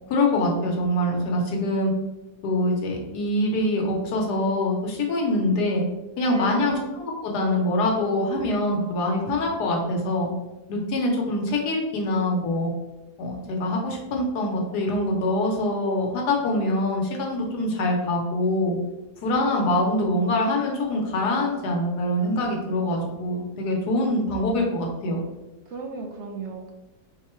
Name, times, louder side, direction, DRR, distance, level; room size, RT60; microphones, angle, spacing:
voice 1, 0.1-1.9 2.4-5.8 6.2-10.3 10.7-12.7 13.2-18.7 19.2-25.2, left 1 dB, 80° left, 0 dB, 1.5 m, -24 dB
voice 2, 6.3-6.8 25.7-26.7, right 3 dB, 70° right, 2 dB, 0.6 m, -35 dB
4.6 x 2.2 x 4.3 m, 1.0 s
omnidirectional pair, 1.7 m